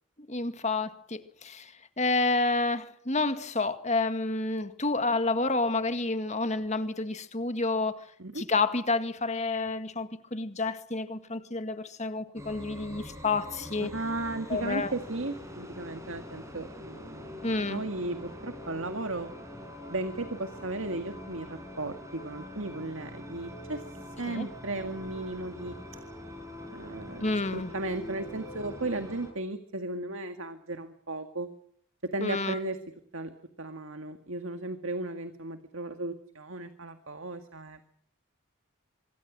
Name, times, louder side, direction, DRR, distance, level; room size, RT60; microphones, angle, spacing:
voice 1, 0.3-8.0 8.4-13.9 14.5-14.9 17.4-17.8 24.3-24.5 27.2-27.7 32.2-32.6, left 3 dB, 30° left, 1.9 m, -29 dB
sound 1, 12.4-29.3, left 1 dB, 15° right, 5.3 m, -44 dB
voice 2, 13.8-17.4 17.7-19.3 19.9-25.8 26.7-27.3 27.5-31.5 32.1-32.8 33.1-33.3 33.6-38.0, right 2 dB, 65° right, 1.9 m, -35 dB
26.0 x 23.5 x 6.3 m
head